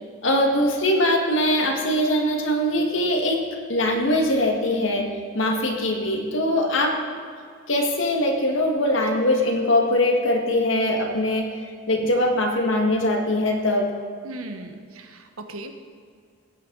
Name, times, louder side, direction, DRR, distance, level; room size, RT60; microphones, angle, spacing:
voice 1, 0.2-5.1 5.3-7.0 7.7-11.5 11.9-13.9, left 1 dB, 65° left, 2 dB, 1.9 m, -22 dB
voice 2, 14.2-15.7, right 2 dB, 90° right, 6 dB, 1.2 m, -37 dB
17.5 x 9.6 x 4.0 m, 2.2 s
head